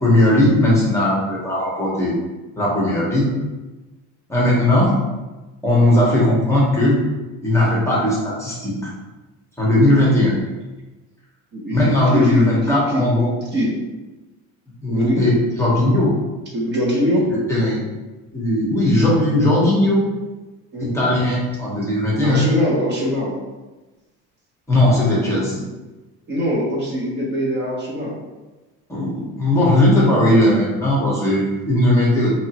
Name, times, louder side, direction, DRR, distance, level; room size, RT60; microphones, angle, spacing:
voice 1, 0.0-2.1 2.6-3.3 4.3-4.9 5.6-7.0 7.4-8.9 9.6-10.3 11.7-13.3 14.8-15.3 15.6-16.2 17.3-17.8 18.3-20.1 20.8-22.5 24.7-25.6 28.9-32.3, left 1 dB, 10° left, -6 dB, 0.9 m, -17 dB
voice 2, 11.5-13.0 13.5-13.7 14.9-15.3 16.5-17.3 20.7-21.1 22.2-23.3 26.3-28.2 32.2-32.3, equal, 35° right, -4 dB, 0.8 m, -22 dB
4.3 x 2.9 x 2.9 m, 1.1 s
cardioid pair, 160°, 32 cm